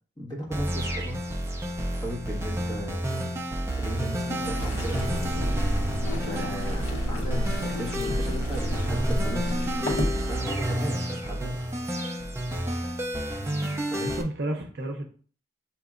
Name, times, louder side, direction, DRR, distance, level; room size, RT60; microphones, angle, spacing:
voice 1, 0.2-1.2 2.0-3.3 3.8-5.2 6.1-11.7 13.9-14.2, equal, 20° left, -3 dB, 1.4 m, -36 dB
sound 1, 0.5-14.2, right 1 dB, 15° right, 0.4 m, -30 dB
sound 2, 4.2-10.0, left 3 dB, 85° left, 1.6 m, -39 dB
sound 3, 4.9-10.2, equal, 45° left, 0.9 m, -30 dB
voice 2, 13.4-15.0, right 1 dB, 55° right, 4 dB, 0.6 m, -33 dB
6.8 x 2.9 x 2.4 m, 0.43 s
head